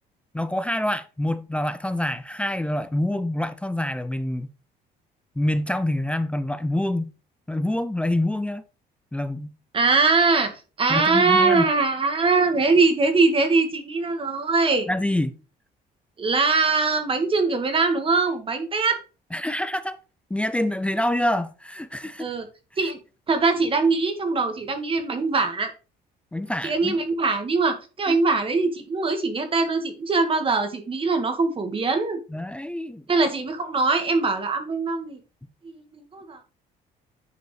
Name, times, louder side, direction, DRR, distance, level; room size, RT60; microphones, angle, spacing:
voice 1, 0.3-4.5 5.4-7.1 7.5-8.6 9.1-9.5 10.9-11.7 14.9-15.3 19.3-20.0 20.3-22.3 26.3-27.0 28.1-28.2 32.3-33.0, left 1 dB, 5° left, 0.5 m, -26 dB
voice 2, 9.7-10.5 10.8-14.9 16.2-19.0 22.2-22.4 22.8-23.0 23.3-25.7 26.6-32.2 33.1-35.2 35.7-36.4, right 4 dB, 30° right, 1.7 m, -22 dB
9.4 x 5.2 x 3.2 m
cardioid pair, 110°, 17 cm